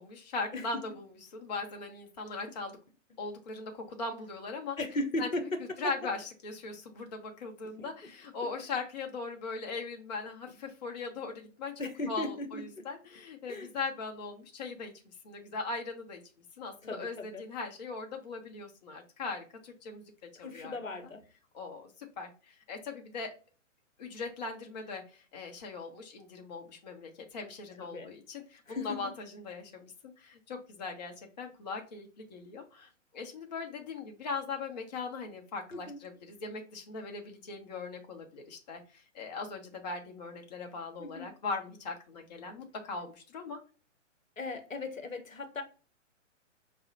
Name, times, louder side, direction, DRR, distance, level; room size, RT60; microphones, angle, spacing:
voice 1, 0.0-2.8 3.2-4.8 5.2-5.3 5.8-11.7 12.1-16.2 16.6-20.0 20.4-20.8 21.5-21.9 22.2-23.3 24.0-29.9 30.2-43.6, left 4 dB, 35° left, 0.5 m, -40 dB
voice 2, 4.8-5.5 7.8-7.9 11.8-12.9 13.5-13.7 16.8-17.4 20.4-21.2 27.8-28.1 28.7-29.0 35.7-36.0 41.0-41.3 44.4-45.6, left 2 dB, 85° left, 0.8 m, -37 dB
4.9 x 2.0 x 2.6 m
figure-of-eight pair, 120°, 39 cm